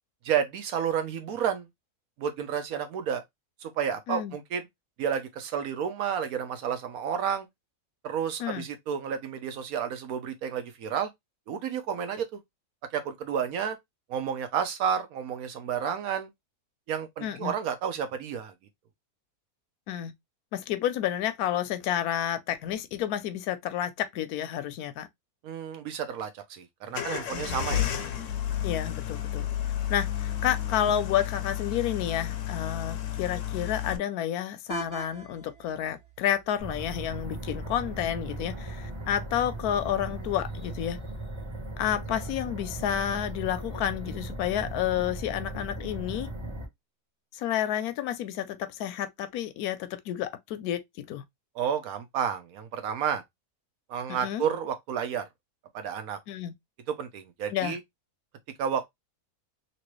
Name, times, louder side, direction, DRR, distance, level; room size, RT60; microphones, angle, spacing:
voice 1, 0.2-1.7 2.2-3.2 3.6-4.7 5.0-7.5 8.0-11.1 11.5-12.4 12.9-13.8 14.1-16.3 16.9-18.5 25.4-27.9 51.6-53.2 53.9-55.2 55.7-56.2 56.9-57.8 58.6-58.9, right 8 dB, 75° right, 1.0 m, -31 dB
voice 2, 17.2-17.5 19.9-20.1 20.5-25.1 27.3-27.6 28.6-29.4 29.9-41.0 41.8-46.3 47.3-51.2 54.1-54.4 56.3-56.5 57.5-57.8, left 10 dB, 85° left, 1.1 m, -30 dB
sound 1, 26.9-34.0, left 11 dB, 70° left, 0.8 m, -31 dB
sound 2, 34.7-40.7, right 4 dB, 55° right, 1.1 m, -46 dB
sound 3, 36.6-46.7, right 1 dB, 25° right, 0.6 m, -38 dB
3.0 x 2.9 x 3.0 m
omnidirectional pair, 1.6 m